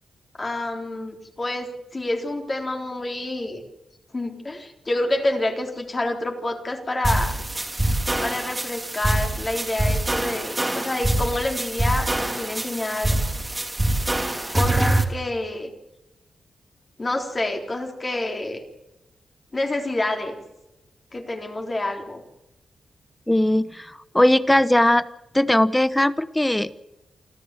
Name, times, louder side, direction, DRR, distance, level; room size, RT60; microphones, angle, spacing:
voice 1, 0.4-3.6 4.1-7.4 8.2-13.1 14.5-15.7 17.0-18.6 19.5-20.4 21.1-22.2, left 2 dB, 30° left, 3 dB, 3.7 m, -28 dB
sound 1, 7.0-15.0, right 1 dB, 15° right, 2.6 m, -24 dB
voice 2, 23.3-25.0 25.3-26.8, left 1 dB, 10° left, 15 dB, 1.0 m, -19 dB
28.5 x 12.5 x 7.7 m, 0.92 s
wide cardioid pair, 105°, 0 cm